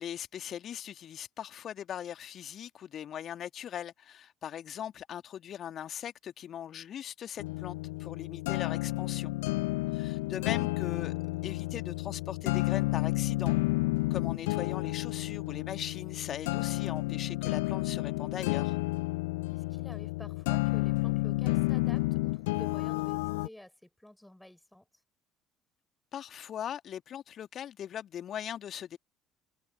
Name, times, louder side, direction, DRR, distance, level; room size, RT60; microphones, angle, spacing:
voice 1, 0.0-9.3 9.9-13.6 14.1-18.8 26.1-29.0, left 10 dB, 45° left, 2.1 m, -40 dB
sound 1, 7.4-23.5, left 23 dB, 70° left, 0.6 m, -31 dB
voice 2, 19.5-24.9, left 1 dB, 5° left, 5.6 m, -51 dB
figure-of-eight pair, 55°, 0 cm